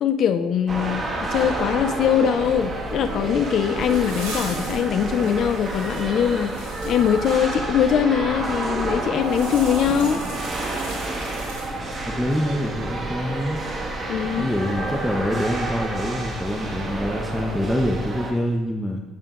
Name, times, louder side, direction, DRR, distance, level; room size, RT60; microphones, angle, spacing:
voice 1, 0.0-10.2 14.1-14.5, left 8 dB, 55° left, 10 dB, 0.4 m, -22 dB
sound 1, 0.7-18.3, right 2 dB, 35° right, 1.5 m, -29 dB
sound 2, 3.4-7.4 9.1-12.1, right 2 dB, 75° right, 2.7 m, -39 dB
voice 2, 12.0-13.6 14.4-19.0, left 1 dB, ahead, 1 dB, 0.8 m, -25 dB
12.5 x 7.2 x 2.4 m, 1.3 s
hypercardioid pair, 60°, 0 cm